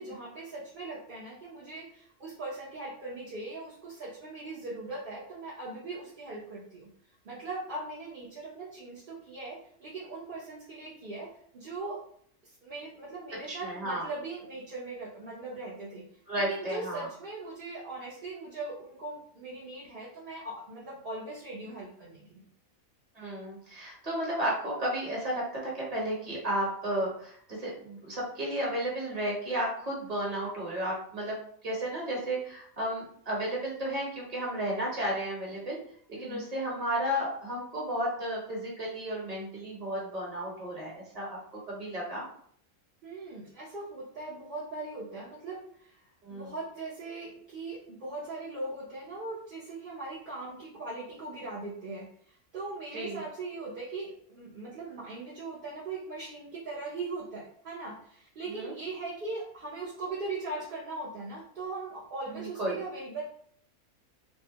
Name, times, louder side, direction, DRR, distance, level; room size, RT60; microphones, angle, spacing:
voice 1, 0.0-6.9 7.2-12.0 12.6-16.0 16.3-22.5 36.2-36.5 43.0-46.0 46.3-63.2, right 3 dB, 50° right, -7 dB, 0.7 m, -40 dB
voice 2, 13.5-14.0 16.3-17.1 23.1-31.4 31.6-35.8 36.2-41.4 41.7-42.3 46.2-46.5 52.9-53.2 58.5-58.7 62.3-62.8, right 1 dB, 30° right, -4 dB, 1.1 m, -33 dB
3.4 x 2.1 x 2.8 m, 0.62 s
omnidirectional pair, 1.5 m